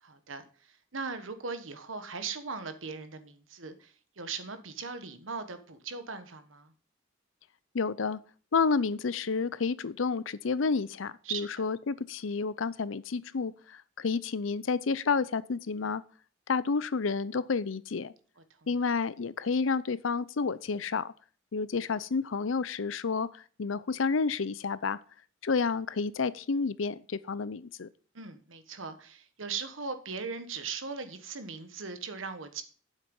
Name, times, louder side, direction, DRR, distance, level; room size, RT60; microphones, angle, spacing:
voice 1, 0.0-6.7 11.2-11.6 28.1-32.6, right 5 dB, 80° right, 1.4 m, -39 dB
voice 2, 7.7-8.2 8.5-16.0 16.5-18.1 18.7-21.1 21.5-25.0 25.4-27.9, left 4 dB, 80° left, 0.6 m, -30 dB
9.3 x 7.5 x 5.4 m
head